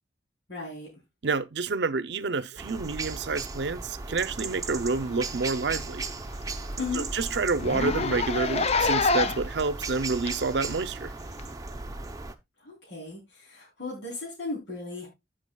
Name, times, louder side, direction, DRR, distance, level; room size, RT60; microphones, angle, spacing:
voice 1, 0.5-0.9 6.8-7.1 12.6-15.1, left 3 dB, 85° left, 3.2 m, -36 dB
voice 2, 1.2-6.1 6.9-11.1, right 4 dB, 75° right, 0.6 m, -28 dB
sound 1, 2.6-12.3, right 3 dB, 20° right, 0.7 m, -36 dB
Zipper (clothing), 4.9-5.1 5.5-5.6 5.9-6.0 6.4-6.5 6.7-6.9 7.6-9.5 10.3-10.4 11.4-11.5, left 3 dB, 35° left, 0.5 m, -26 dB
14.5 x 5.8 x 2.3 m
head